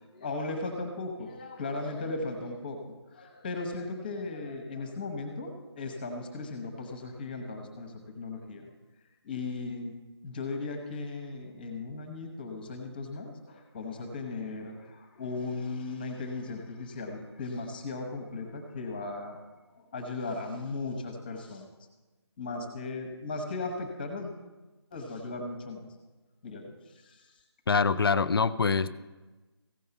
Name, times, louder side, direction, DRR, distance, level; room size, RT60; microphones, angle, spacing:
voice 1, 0.0-8.7 9.2-19.4 19.7-21.7 22.4-24.3 24.9-25.9 26.4-27.3, left 3 dB, 20° left, 5 dB, 1.0 m, -37 dB
voice 2, 27.7-29.0, left 5 dB, 55° left, 17 dB, 0.6 m, -25 dB
15.5 x 5.5 x 6.9 m, 1.2 s
figure-of-eight pair, 165°, 14 cm